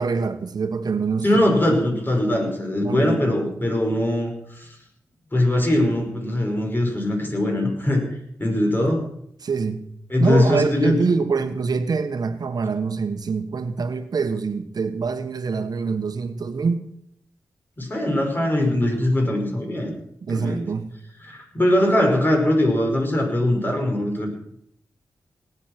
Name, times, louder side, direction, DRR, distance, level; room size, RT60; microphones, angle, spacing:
voice 1, 0.0-1.4 1.7-1.8 2.8-3.5 9.4-9.8 10.2-16.8 20.2-20.9, right 5 dB, 65° right, 9 dB, 1.4 m, -25 dB
voice 2, 1.2-4.7 5.3-8.0 8.4-9.0 10.1-11.0 17.8-19.9 20.3-20.6 21.2-24.3, left 1 dB, 30° left, 2 dB, 5.1 m, -21 dB
18.5 x 9.4 x 6.0 m, 0.71 s
cardioid pair, 70°, 7 cm